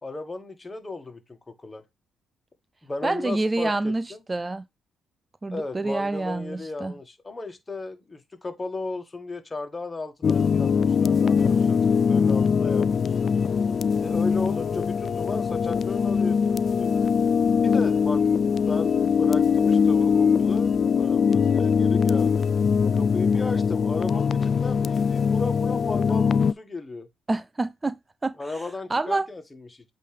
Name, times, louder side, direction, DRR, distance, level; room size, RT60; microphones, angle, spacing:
voice 1, 0.0-1.8 2.8-4.2 5.5-13.3 14.0-16.9 17.6-18.2 18.7-22.5 22.9-27.1 28.4-29.9, left 3 dB, 25° left, 1.9 m, -35 dB
voice 2, 3.0-4.6 5.4-6.9 27.3-28.0 28.2-29.3, right 2 dB, 25° right, 0.4 m, -27 dB
sound 1, 10.2-26.5, left 6 dB, 55° left, 0.3 m, -22 dB
8.2 x 3.2 x 3.6 m
hypercardioid pair, 50°, 0 cm